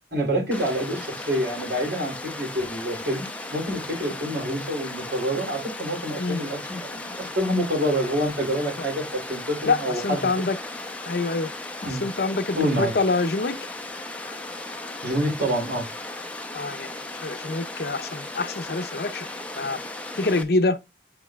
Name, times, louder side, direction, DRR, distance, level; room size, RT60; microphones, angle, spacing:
voice 1, 0.1-10.3 11.8-12.0 12.5-12.9 15.0-15.8, equal, 80° right, 3.2 m, -27 dB
Water, 0.5-20.4, left 2 dB, 10° left, 0.7 m, -36 dB
voice 2, 10.0-10.6 11.1-11.5 11.8-13.5 16.5-16.9 17.2-19.3 19.6-19.8 20.1-20.8, left 3 dB, 60° left, 0.7 m, -25 dB
8.9 x 4.7 x 2.3 m
head